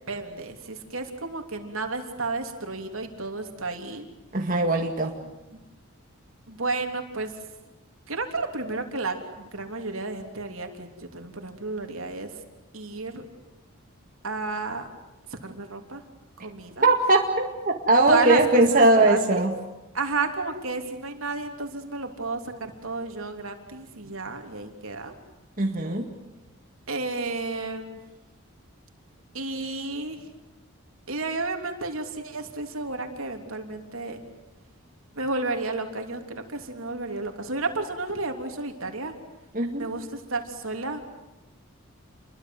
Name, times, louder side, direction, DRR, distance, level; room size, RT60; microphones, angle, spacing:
voice 1, 0.1-4.1 5.5-5.6 6.5-7.3 8.1-12.3 12.7-13.2 14.2-14.8 15.3-16.0 16.4-16.9 18.1-19.5 19.9-25.1 26.9-28.0 29.3-30.3 31.1-34.2 35.2-39.1 39.8-41.0, right 3 dB, 70° right, 5 dB, 3.3 m, -32 dB
voice 2, 4.3-5.1 16.8-19.6 25.6-26.1 39.5-39.9, right 2 dB, 40° right, 1 dB, 2.1 m, -20 dB
29.0 x 23.0 x 7.9 m, 1.0 s
head